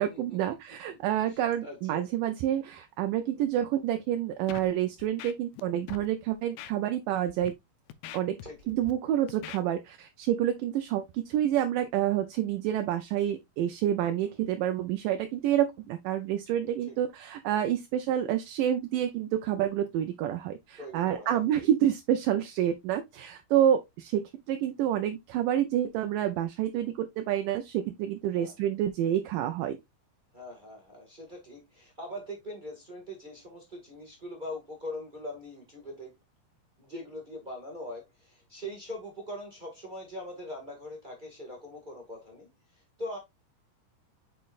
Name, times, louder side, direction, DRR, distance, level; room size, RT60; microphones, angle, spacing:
voice 1, 0.0-7.5 8.1-8.4 8.7-29.8, right 11 dB, 80° right, 2.1 m, -28 dB
voice 2, 1.3-2.0 8.4-8.6 14.1-14.4 16.9-17.0 20.8-21.4 28.3-28.5 30.3-36.2 36.8-42.5 43.0-43.2, left 1 dB, 30° right, 0.9 m, -42 dB
Scratching (performance technique), 4.5-4.7 5.0-5.6 5.9-6.1 6.6-6.7 7.3-7.5 7.9-8.9 9.3-9.6, left 12 dB, 85° left, 2.4 m, -42 dB
7.7 x 5.2 x 2.4 m
omnidirectional pair, 4.0 m